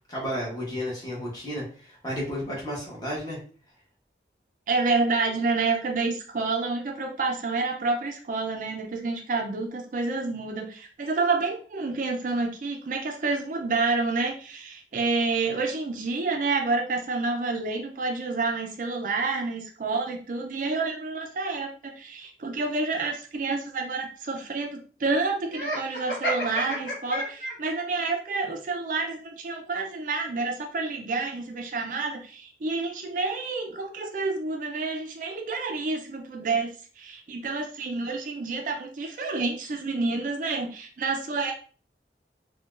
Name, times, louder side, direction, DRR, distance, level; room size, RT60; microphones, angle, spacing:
voice 1, 0.1-3.4, equal, 20° left, -4 dB, 1.1 m, -32 dB
voice 2, 4.7-41.5, right 3 dB, 45° right, 2 dB, 0.4 m, -29 dB
Laughter, 25.5-27.8, equal, 55° left, 0.9 m, -31 dB
3.7 x 2.2 x 2.4 m, 0.40 s
head